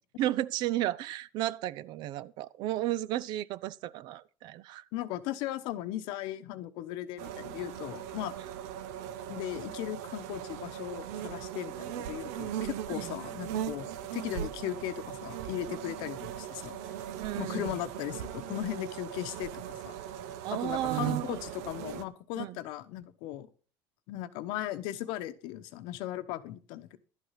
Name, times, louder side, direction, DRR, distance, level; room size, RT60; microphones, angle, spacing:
voice 1, 0.2-4.8 12.9-13.1 17.2-17.7 20.4-21.4 22.4-22.6, right 14 dB, 65° right, 0.6 m, -33 dB
voice 2, 4.9-8.4 9.3-16.8 17.4-20.0 20.5-23.5 24.1-27.0, left 13 dB, 75° left, 0.9 m, -37 dB
sound 1, 7.2-22.0, right 10 dB, 90° right, 0.9 m, -39 dB
12.0 x 8.3 x 5.7 m
cardioid pair, 120°, 8 cm